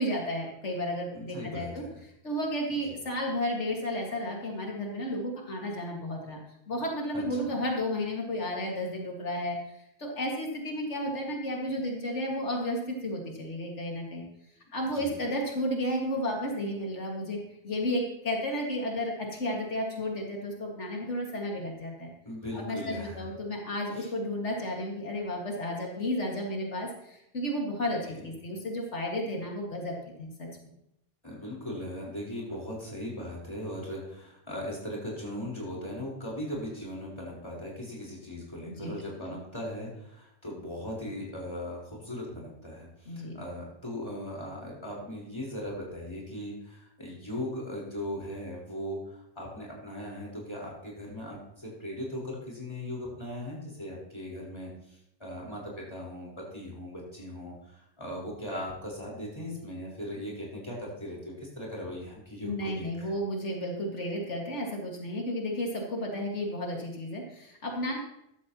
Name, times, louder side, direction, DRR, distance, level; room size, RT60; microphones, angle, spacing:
voice 1, 0.0-1.8 2.2-6.4 6.7-9.6 10.0-14.2 14.7-17.4 17.6-22.1 22.5-30.7 38.7-38.9 43.1-43.3 62.4-68.0, equal, 85° left, 0 dB, 2.3 m, -32 dB
voice 2, 1.1-2.0 2.7-2.9 7.1-7.5 14.8-15.1 22.2-23.2 23.9-24.1 31.2-63.1, left 1 dB, 25° left, -4 dB, 4.4 m, -39 dB
14.5 x 12.0 x 3.0 m, 0.79 s
omnidirectional pair, 1.2 m